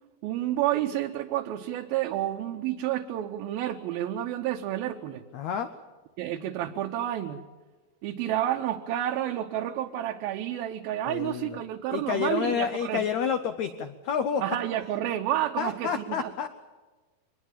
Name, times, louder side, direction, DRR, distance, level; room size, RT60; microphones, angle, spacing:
voice 1, 0.2-5.2 6.2-7.4 8.0-13.0 14.4-16.3, right 12 dB, 80° right, 3 dB, 2.6 m, -30 dB
voice 2, 5.3-5.7 11.1-11.6 11.9-14.4 15.6-16.5, left 7 dB, 85° left, 9 dB, 1.6 m, -29 dB
23.5 x 20.5 x 7.3 m, 1.3 s
omnidirectional pair, 4.4 m